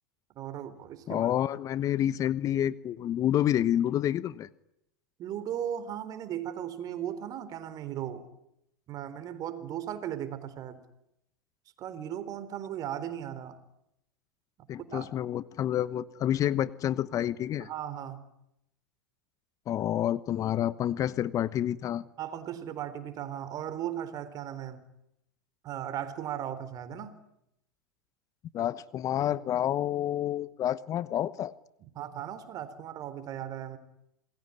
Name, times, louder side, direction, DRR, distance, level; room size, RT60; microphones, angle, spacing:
voice 1, 0.4-1.3 5.2-8.3 8.9-10.8 11.8-13.6 14.9-15.1 17.6-18.2 22.2-24.8 25.6-27.2 31.9-33.8, right 10 dB, 40° right, 13 dB, 4.1 m, -37 dB
voice 2, 1.1-4.5 14.7-17.7 19.7-22.0 28.5-31.5, left 11 dB, 35° left, 17 dB, 1.0 m, -29 dB
28.0 x 21.0 x 9.9 m, 0.82 s
hypercardioid pair, 100°, 10 cm